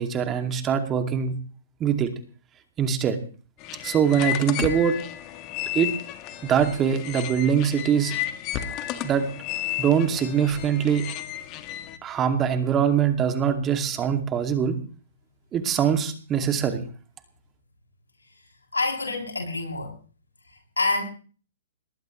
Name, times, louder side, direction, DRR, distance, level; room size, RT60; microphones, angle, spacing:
voice 1, 0.0-1.3 1.8-2.1 2.8-3.2 3.8-5.0 5.7-6.0 6.4-8.2 9.0-9.2 9.8-11.1 12.0-14.8 15.5-16.8, right 8 dB, 25° right, 6 dB, 2.5 m, -23 dB
sound 1, 3.6-12.0, left 12 dB, 35° left, 2.0 m, -33 dB
voice 2, 18.7-19.9 20.8-21.0, left 3 dB, 90° left, 1 dB, 7.4 m, -26 dB
21.5 x 19.5 x 3.2 m, 0.40 s
hypercardioid pair, 120°, 0 cm